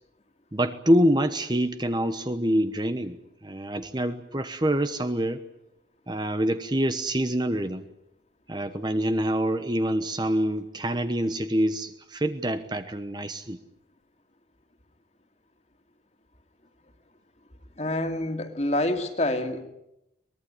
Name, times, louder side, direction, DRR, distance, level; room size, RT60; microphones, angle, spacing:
voice 1, 0.5-3.2 3.4-5.4 6.1-7.8 8.5-13.6, equal, 25° right, 9 dB, 1.1 m, -26 dB
voice 2, 17.8-19.6, left 1 dB, 35° left, 6 dB, 2.4 m, -27 dB
23.5 x 20.5 x 9.9 m, 0.88 s
head